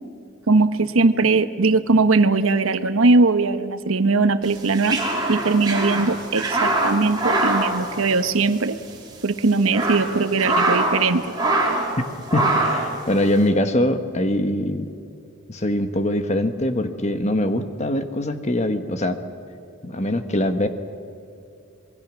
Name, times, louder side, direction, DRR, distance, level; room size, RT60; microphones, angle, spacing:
voice 1, 0.5-5.0 5.3-8.8 9.2-11.2, right 3 dB, 80° right, 11 dB, 1.0 m, -19 dB
sound 1, 4.5-8.6 8.9-9.0 9.5-11.1 11.3-11.9 12.3-12.9, right 2 dB, 20° right, 3.3 m, -23 dB
voice 2, 12.3-14.9 15.5-19.2 19.8-20.7, left 1 dB, 35° left, 8 dB, 1.3 m, -23 dB
27.0 x 21.5 x 6.3 m, 2.6 s
head